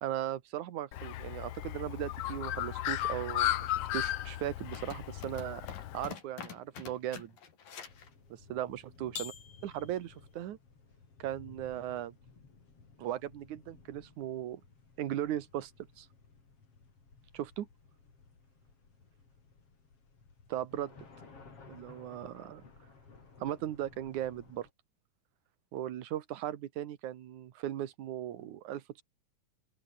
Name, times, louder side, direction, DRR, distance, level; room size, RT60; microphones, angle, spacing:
voice 1, 0.0-5.6 5.9-7.3 8.3-9.3 9.6-10.6 11.2-12.2 13.0-14.6 15.0-15.7 16.0-16.1 17.3-17.7 20.5-20.9 21.7-22.6 23.4-24.7 25.7-29.0, right 12 dB, 65° right, 2.7 m, -37 dB
Bird, 0.9-6.1, left 13 dB, 90° left, 1.3 m, -35 dB
sound 1, 4.7-8.1 9.2-10.0, left 7 dB, 70° left, 5.2 m, -45 dB
sound 2, 7.8-24.7, left 4 dB, 40° left, 5.1 m, -57 dB
open air
omnidirectional pair, 4.0 m